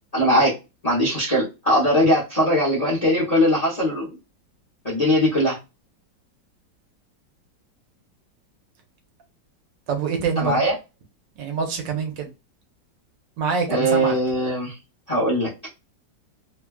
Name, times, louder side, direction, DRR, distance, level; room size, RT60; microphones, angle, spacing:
voice 1, 0.1-0.5 0.8-4.2 4.8-5.6 10.4-10.7 13.7-14.8 15.1-15.5, equal, 30° left, 0.7 m, -20 dB
voice 2, 9.9-10.6 11.4-12.3 13.4-14.2, right 6 dB, 80° right, 1.4 m, -25 dB
3.2 x 2.3 x 2.2 m
omnidirectional pair, 2.0 m